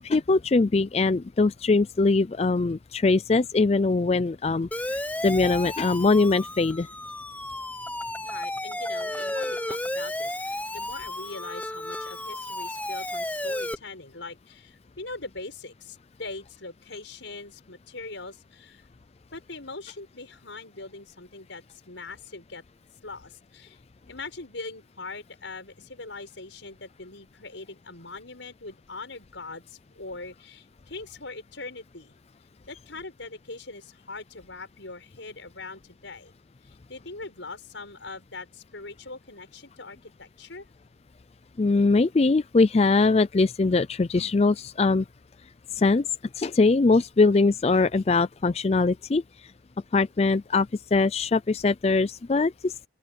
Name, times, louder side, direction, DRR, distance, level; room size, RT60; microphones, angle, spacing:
voice 1, 0.0-6.9 41.6-45.1 45.7-46.1 46.4-49.2 49.9-52.9, left 3 dB, 35° left, 0.4 m, -22 dB
Siren, 4.7-13.7, left 1 dB, 10° left, 1.2 m, -33 dB
voice 2, 8.2-18.8 19.3-22.6 23.0-23.8 24.1-32.1 32.7-36.3 36.6-40.7, left 3 dB, 85° left, 6.7 m, -41 dB
open air
head